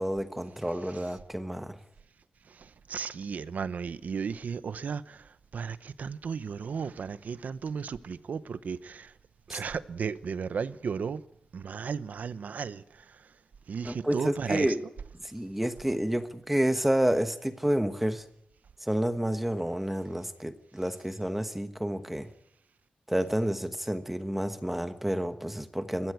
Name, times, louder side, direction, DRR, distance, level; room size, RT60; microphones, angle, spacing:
voice 1, 0.0-1.8 9.5-9.6 13.8-14.8 15.2-18.2 18.8-22.3 23.1-26.1, right 1 dB, 5° right, 1.2 m, -29 dB
voice 2, 2.6-5.2 5.5-9.1 9.5-11.2 11.5-12.8 13.7-14.7, right 6 dB, 80° right, 0.8 m, -34 dB
22.0 x 15.0 x 9.3 m
wide cardioid pair, 175°, 3 cm